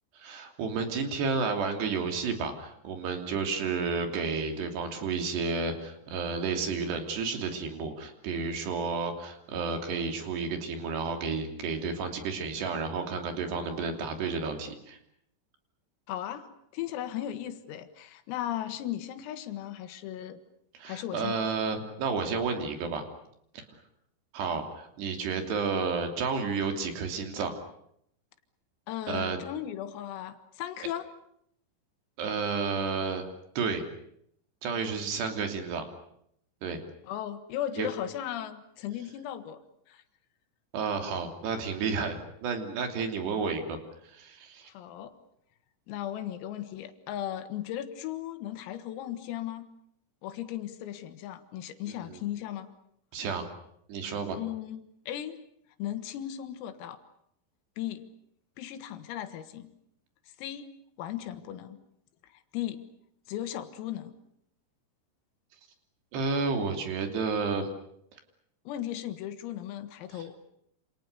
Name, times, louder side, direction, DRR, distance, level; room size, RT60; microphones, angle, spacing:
voice 1, 0.1-15.0 20.7-23.0 23.5-23.6 24.3-27.5 29.1-29.4 32.2-33.3 33.6-33.9 34.6-35.8 36.6-36.8 37.8-37.9 40.7-43.8 44.0-44.7 51.9-52.2 53.1-53.5 53.9-54.4 66.1-67.7 70.1-70.2, right 5 dB, 55° right, 5 dB, 4.8 m, -31 dB
voice 2, 16.1-16.5 16.7-20.4 20.9-21.3 28.9-31.1 37.1-39.6 39.9-40.0 44.7-45.1 45.9-49.7 50.2-52.7 54.4-54.8 55.1-55.4 55.8-57.0 57.8-58.1 58.6-59.7 60.4-60.7 61.0-61.8 62.5-62.8 63.3-64.2 68.7-70.5, left 11 dB, 85° left, 9 dB, 4.3 m, -36 dB
28.0 x 28.0 x 6.8 m, 0.73 s
omnidirectional pair, 5.9 m